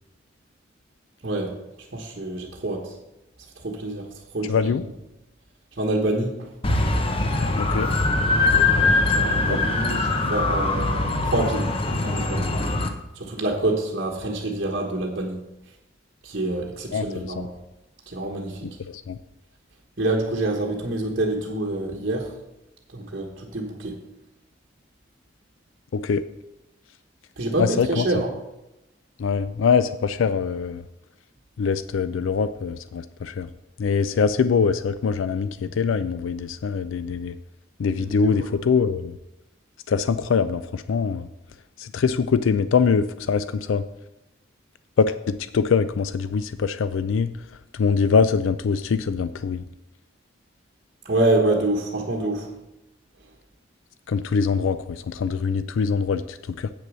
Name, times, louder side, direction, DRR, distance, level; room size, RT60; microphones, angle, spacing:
voice 1, 1.2-1.5 1.9-2.9 3.6-4.1 4.3-4.6 5.8-6.3 8.7-11.8 12.0-12.5 13.1-15.5 16.2-17.5 18.1-18.7 20.0-22.3 22.9-24.0 27.4-28.3 38.0-38.5 51.0-52.5, right 2 dB, 50° right, -2 dB, 1.2 m, -26 dB
voice 2, 4.5-4.8 7.6-7.9 9.5-9.6 16.9-17.5 18.9-19.2 25.9-26.2 27.6-28.1 29.2-30.8 31.6-33.5 33.8-37.3 37.8-39.1 39.9-41.3 41.8-43.8 45.0-47.3 47.8-49.6 54.1-56.7, left 5 dB, 85° left, 12 dB, 0.4 m, -23 dB
sound 1, 6.6-12.9, left 2 dB, 30° left, 0.8 m, -22 dB
8.3 x 6.7 x 6.2 m, 0.94 s
head